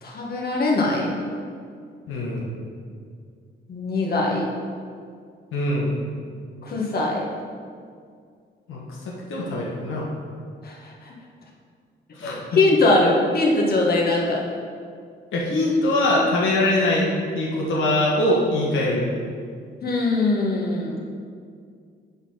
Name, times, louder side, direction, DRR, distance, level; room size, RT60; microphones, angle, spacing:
voice 1, 0.0-1.1 3.7-4.5 6.6-7.2 10.6-10.8 11.0-11.1 12.2-14.4 19.8-21.0, left 2 dB, 50° left, -2 dB, 1.6 m, -21 dB
voice 2, 2.1-2.5 5.5-6.1 8.7-9.0 9.3-10.1 12.1-12.5 15.3-17.1 17.3-19.1, left 1 dB, 85° left, -4 dB, 1.4 m, -22 dB
8.1 x 3.8 x 5.7 m, 2.2 s
cardioid pair, 120°, 20 cm